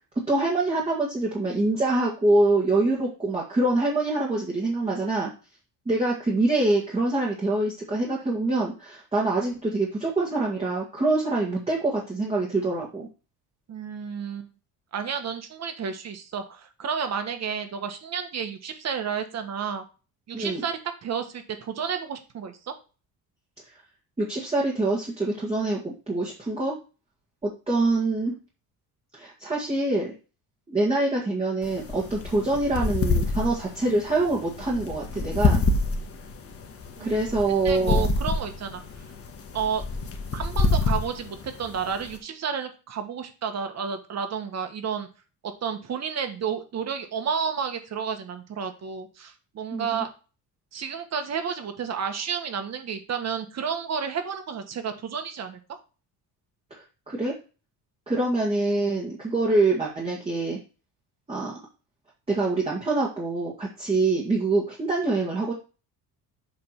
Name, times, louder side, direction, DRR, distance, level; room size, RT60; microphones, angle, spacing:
voice 1, 0.3-5.3 5.9-13.1 20.3-20.6 24.2-26.8 27.4-28.4 29.2-30.1 30.7-35.7 37.0-38.1 49.7-50.1 56.7-57.3 58.1-60.6 61.3-61.6 62.3-65.5, right 2 dB, 15° right, -4 dB, 1.9 m, -25 dB
voice 2, 13.7-14.5 14.9-19.8 20.3-22.7 37.0-37.4 37.6-38.8 39.5-39.8 40.3-45.1 45.4-50.1 50.7-55.6, right 7 dB, 40° right, 7 dB, 1.4 m, -31 dB
sound 1, 31.6-42.2, left 3 dB, 35° left, 1.2 m, -27 dB
7.6 x 3.5 x 5.9 m, 0.33 s
cardioid pair, 135°, 39 cm